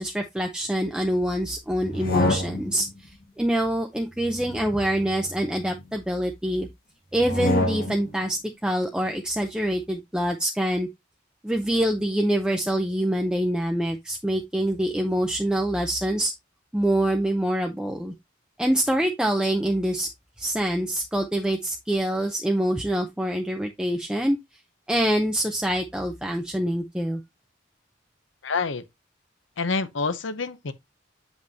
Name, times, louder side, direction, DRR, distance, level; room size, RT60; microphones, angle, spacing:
voice 1, 0.0-6.7 7.1-10.9 11.4-16.3 16.7-18.1 18.6-20.1 20.4-24.4 24.9-27.2, right 1 dB, 5° right, 0.5 m, -25 dB
sound 1, 1.8-2.9 4.2-5.8 7.2-8.2, left 1 dB, 50° left, 1.4 m, -28 dB
voice 2, 28.4-28.8 29.6-30.7, left 4 dB, 80° left, 0.8 m, -27 dB
7.8 x 5.3 x 2.7 m
head